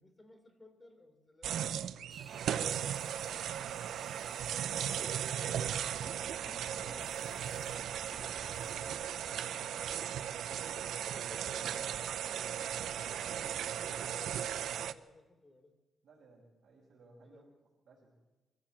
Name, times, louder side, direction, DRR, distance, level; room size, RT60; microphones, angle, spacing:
voice 1, 0.0-3.8 4.5-5.0 8.8-9.2 10.5-15.7 17.2-17.4, left 2 dB, 20° left, 6 dB, 3.3 m, -60 dB
sound 1, 1.4-14.9, right 10 dB, 80° right, 0.7 m, -37 dB
sound 2, 2.1-9.1, equal, ahead, 1.3 m, -58 dB
sound 3, 3.9-9.2, left 4 dB, 70° left, 2.0 m, -61 dB
voice 2, 6.0-7.4 8.6-9.8 16.0-17.5 17.9-18.1, right 3 dB, 55° right, -4 dB, 5.1 m, -59 dB
24.0 x 15.0 x 7.4 m, 1.1 s
cardioid pair, 135°, 0 cm